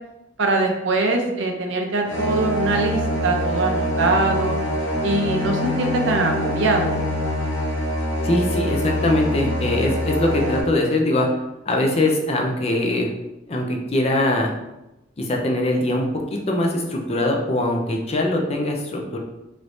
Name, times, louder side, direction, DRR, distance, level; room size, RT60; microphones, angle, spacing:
voice 1, 0.4-4.6 5.0-6.9, right 2 dB, 80° right, 2 dB, 0.6 m, -22 dB
sound 1, 2.1-10.6, equal, 85° left, 0.8 m, -24 dB
voice 2, 8.2-11.3 11.7-13.1 13.5-14.5 15.2-19.2, left 1 dB, 35° left, 1 dB, 0.5 m, -22 dB
3.1 x 3.1 x 2.6 m, 0.94 s
head